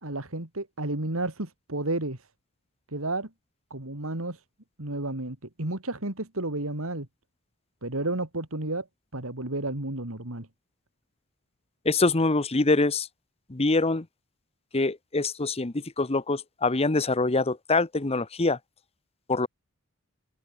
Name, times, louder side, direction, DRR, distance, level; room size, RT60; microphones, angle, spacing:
voice 1, 0.0-2.2 2.9-3.3 3.7-4.4 4.8-7.1 7.8-8.9 9.1-10.5, right 2 dB, 65° right, 3.1 m, -31 dB
voice 2, 11.8-13.1 13.5-14.1 14.7-18.6 19.3-19.5, left 3 dB, 25° left, 1.0 m, -24 dB
open air
head